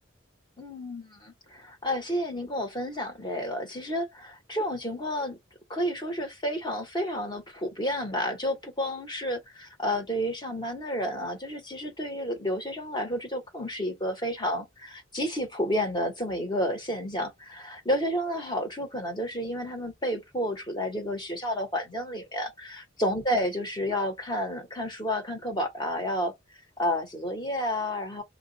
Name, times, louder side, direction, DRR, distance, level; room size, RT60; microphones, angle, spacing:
voice 1, 0.6-5.4 5.7-26.3 26.8-28.2, equal, 20° left, 1.2 m, -31 dB
2.9 x 2.5 x 4.0 m
head